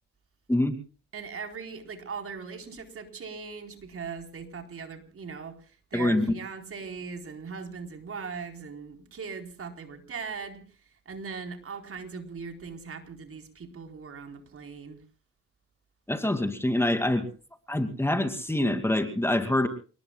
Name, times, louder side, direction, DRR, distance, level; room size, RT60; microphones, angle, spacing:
voice 1, 1.1-10.6 11.1-15.0, right 5 dB, 45° right, 5 dB, 4.3 m, -39 dB
voice 2, 5.9-6.2 16.1-17.3 17.7-19.7, left 1 dB, 10° left, 7 dB, 2.5 m, -25 dB
29.5 x 19.5 x 2.4 m, 0.37 s
cardioid pair, 90°, 30 cm